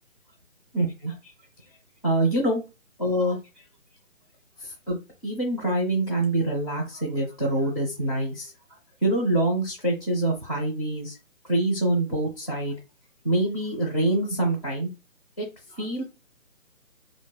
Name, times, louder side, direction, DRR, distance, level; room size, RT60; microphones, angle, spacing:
voice 1, 0.7-1.3 2.0-2.6 3.0-3.4 4.6-5.0 5.2-8.5 9.0-11.2 11.5-12.8 13.2-14.9 15.4-16.0, right 1 dB, 25° left, -1 dB, 0.5 m, -25 dB
3.0 x 2.2 x 2.2 m, 0.27 s
figure-of-eight pair, 150°, 39 cm